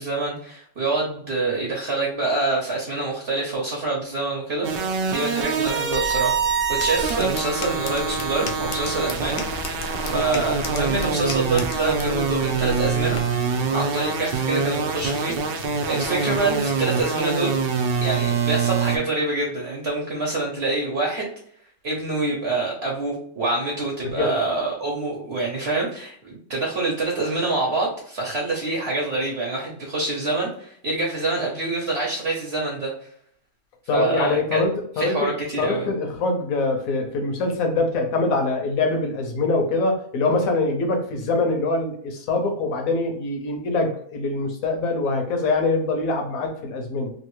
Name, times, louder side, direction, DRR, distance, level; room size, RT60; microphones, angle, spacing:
voice 1, 0.0-6.3 6.8-13.2 13.7-17.6 18.0-21.3 21.8-32.9 33.9-34.6 35.0-35.9, right 3 dB, 50° right, -3 dB, 0.9 m, -26 dB
sound 1, 4.6-19.0, right 5 dB, 75° right, 0.5 m, -25 dB
sound 2, 6.0-13.2, left 3 dB, 90° left, 0.4 m, -36 dB
sound 3, 7.4-17.4, left 4 dB, 55° left, 0.8 m, -41 dB
voice 2, 33.9-35.3 35.6-47.1, left 3 dB, 70° left, 3 dB, 1.2 m, -24 dB
3.1 x 2.5 x 3.0 m, 0.62 s
omnidirectional pair, 1.6 m